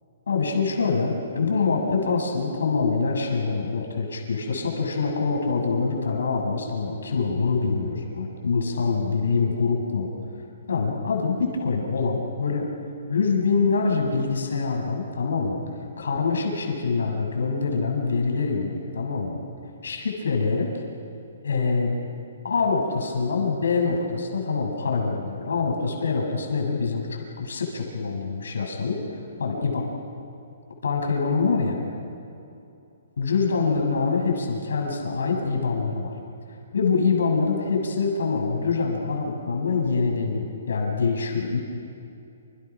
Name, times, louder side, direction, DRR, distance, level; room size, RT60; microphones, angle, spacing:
voice 1, 0.3-10.1 10.7-12.7 13.1-15.6 16.0-19.4 19.8-20.7 21.4-21.9 22.4-29.9 30.8-31.8 33.2-36.1 36.7-41.6, left 4 dB, 90° left, 0 dB, 7.6 m, -25 dB
29.0 x 29.0 x 6.3 m, 2.6 s
hypercardioid pair, 165°, 0 cm